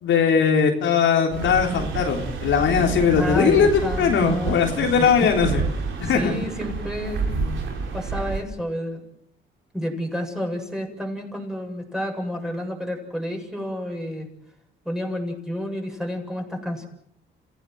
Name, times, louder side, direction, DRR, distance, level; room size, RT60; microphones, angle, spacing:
voice 1, 0.0-5.6 6.0-6.3 7.3-7.6, left 6 dB, 75° left, 2 dB, 3.6 m, -20 dB
sound 1, 1.3-8.4, right 4 dB, 75° right, 5.7 m, -29 dB
voice 2, 3.2-5.3 6.0-7.3 7.9-9.0 9.7-14.3 14.8-16.9, equal, 5° right, 1 dB, 7.8 m, -30 dB
28.5 x 16.5 x 7.9 m, 0.69 s
cardioid pair, 90°, 20 cm